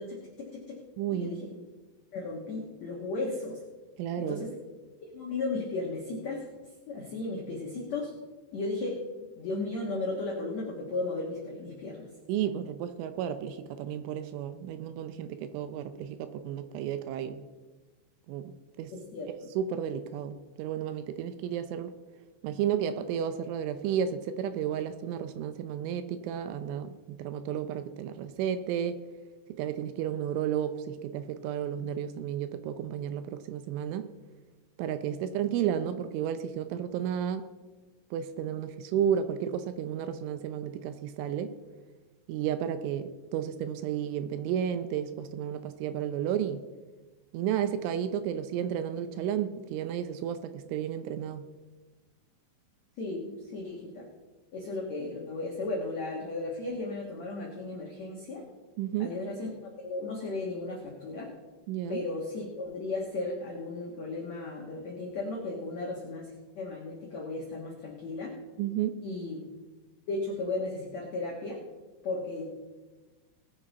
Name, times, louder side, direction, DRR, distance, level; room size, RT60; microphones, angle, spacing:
voice 1, 0.0-0.8 1.1-1.6 2.1-3.6 4.2-4.5 5.1-6.4 6.9-8.1 8.5-9.0 9.4-12.1 18.9-19.3 53.0-54.0 54.5-58.4 59.0-59.5 59.8-61.3 61.9-66.3 66.5-68.3 69.0-69.4 70.1-71.6 72.0-72.5, left 2 dB, 85° left, -2 dB, 1.5 m, -35 dB
voice 2, 1.0-1.3 4.0-4.5 12.3-17.4 18.3-18.9 19.6-21.9 22.4-29.0 29.6-34.1 34.8-37.5 38.1-41.5 42.3-46.6 47.3-51.4 58.8-59.1 61.7-62.0 68.6-69.0, right 9 dB, 80° right, 10 dB, 3.0 m, -32 dB
20.0 x 8.0 x 4.1 m, 1.2 s
omnidirectional pair, 5.8 m